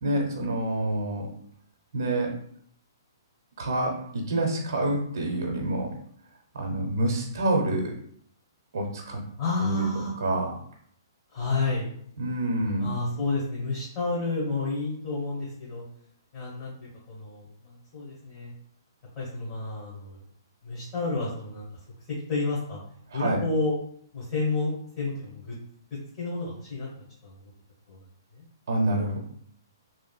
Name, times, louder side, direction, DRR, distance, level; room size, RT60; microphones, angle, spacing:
voice 1, 0.0-1.3 1.9-2.3 3.6-5.9 6.5-7.9 8.7-9.2 9.6-9.9 10.2-10.5 12.2-12.9 23.1-23.4 28.7-29.2, right 1 dB, 60° right, 0 dB, 0.6 m, -27 dB
voice 2, 9.4-10.1 11.3-11.9 12.8-15.8 16.3-16.7 17.1-18.5 19.1-20.2 20.6-21.6 22.1-22.8 23.1-23.7 24.1-25.5 26.2-27.3 27.9-28.0 28.3-28.4, left 3 dB, 35° left, -8 dB, 1.2 m, -30 dB
3.0 x 2.5 x 2.2 m, 0.65 s
figure-of-eight pair, 120°, 2 cm